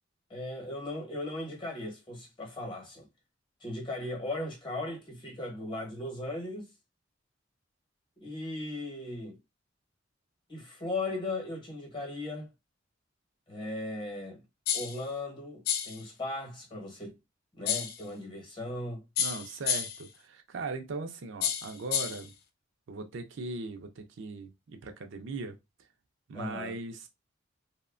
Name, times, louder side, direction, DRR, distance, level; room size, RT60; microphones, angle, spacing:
voice 1, 0.3-3.1 3.6-6.7 8.2-9.4 10.5-12.5 13.5-14.4 14.7-17.1 17.5-19.0 26.3-26.8, left 2 dB, 25° left, 0.9 m, -37 dB
sound 1, 14.7-15.0 15.7-16.0 17.7-18.0 19.2-20.1 21.4-22.3, left 8 dB, 50° left, 0.3 m, -30 dB
voice 2, 19.2-22.3 22.9-25.6 26.3-27.1, right 3 dB, 65° right, 0.4 m, -39 dB
2.7 x 2.1 x 2.4 m
head